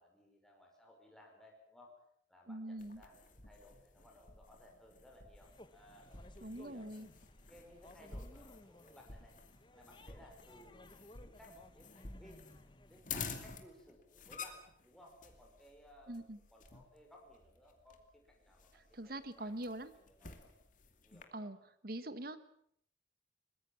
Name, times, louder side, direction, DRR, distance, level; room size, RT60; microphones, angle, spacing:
voice 1, 0.0-1.9 2.3-6.9 7.5-9.3 9.7-12.4 12.9-16.2 16.5-20.5 21.0-21.5, left 1 dB, 5° left, 0 dB, 5.6 m, -61 dB
voice 2, 2.5-3.0 6.4-7.1 16.1-16.4 18.9-19.9 21.3-21.6 21.8-22.4, right 1 dB, 55° right, 12 dB, 1.5 m, -43 dB
sound 1, 2.8-21.2, left 5 dB, 45° left, 2.5 m, -51 dB
sound 2, 5.4-13.0, left 1 dB, 25° left, 1.3 m, -60 dB
23.0 x 21.0 x 7.3 m, 0.68 s
head